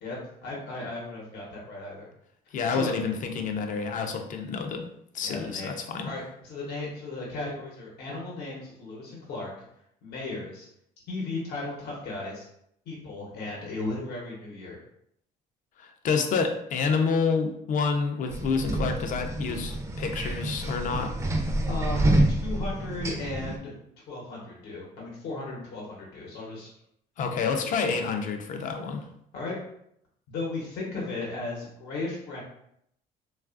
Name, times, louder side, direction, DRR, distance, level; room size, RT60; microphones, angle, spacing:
voice 1, 0.0-2.1 2.7-3.0 5.2-5.8 6.0-9.5 10.0-10.7 11.1-12.5 12.9-14.8 21.7-23.7 24.1-26.7 27.4-27.9 29.3-29.6 30.3-32.4, left 2 dB, 80° left, -3 dB, 0.9 m, -36 dB
voice 2, 2.5-4.8 5.1-6.1 15.8-21.1 27.2-29.1, left 5 dB, 50° left, 5 dB, 0.5 m, -28 dB
sound 1, 18.3-23.6, right 1 dB, 15° right, 0.4 m, -27 dB
3.1 x 2.3 x 2.4 m, 0.73 s
cardioid pair, 110°, 17 cm